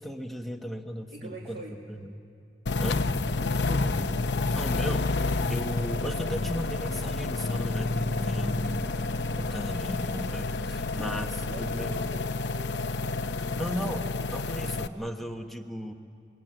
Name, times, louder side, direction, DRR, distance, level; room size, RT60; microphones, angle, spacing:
voice 1, 0.0-2.1 2.8-3.1 4.5-5.2 5.5-8.9 9.3-12.0 13.5-15.9, equal, ahead, 3 dB, 1.2 m, -36 dB
voice 2, 1.1-1.8 3.3-4.2 10.9-11.2 11.4-14.3, equal, 55° right, -1 dB, 2.0 m, -45 dB
sound 1, 2.7-14.9, left 3 dB, 65° left, 0.8 m, -29 dB
sound 2, 3.9-13.9, left 3 dB, 45° left, 1.1 m, -47 dB
25.5 x 22.5 x 9.0 m, 2.4 s
head